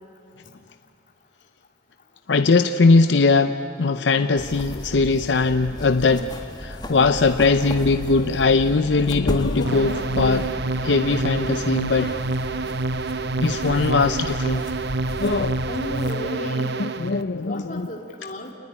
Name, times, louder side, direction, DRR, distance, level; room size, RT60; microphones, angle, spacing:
voice 1, 2.3-10.5 10.8-12.3 13.4-14.7 15.2-15.6 16.8-17.9, left 3 dB, 65° left, 9 dB, 0.6 m, -20 dB
sound 1, 4.4-16.1, equal, 25° left, 1.9 m, -34 dB
sound 2, 9.7-17.2, right 2 dB, 60° right, 0.8 m, -27 dB
voice 2, 15.7-16.8 17.4-18.5, equal, 45° left, 1 dB, 2.6 m, -33 dB
28.0 x 20.0 x 9.8 m, 2.6 s
head